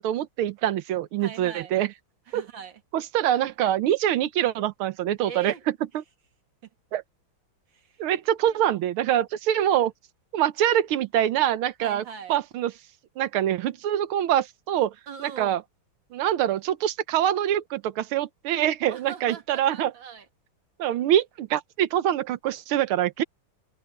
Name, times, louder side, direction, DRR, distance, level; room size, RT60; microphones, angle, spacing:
voice 1, 0.0-1.9 2.3-2.4 2.9-5.5 5.9-6.0 6.9-7.0 8.0-9.9 10.3-12.0 12.3-12.7 13.2-14.9 15.2-15.6 16.1-19.9 20.8-23.2, right 11 dB, 85° right, 1.7 m, -24 dB
voice 2, 1.2-1.8 2.3-2.8 5.2-5.7 7.7-8.0 8.4-8.7 11.8-12.4 15.1-15.6 18.9-20.3, right 7 dB, 65° right, 2.2 m, -41 dB
omnidirectional pair, 2.3 m